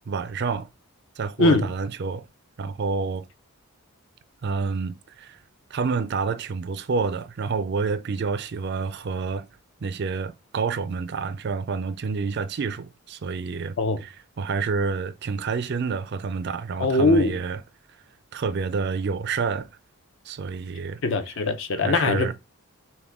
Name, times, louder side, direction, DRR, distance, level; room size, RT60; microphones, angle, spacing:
voice 1, 0.1-0.7 1.2-2.3 2.6-3.3 4.4-5.4 5.7-9.5 9.8-17.6 18.3-19.7 20.3-21.0 21.8-22.3, right 5 dB, 50° right, 0.4 m, -28 dB
voice 2, 1.4-1.7 13.8-14.0 16.8-17.4 21.0-22.3, left 2 dB, 55° left, 0.6 m, -21 dB
5.8 x 2.2 x 3.5 m
head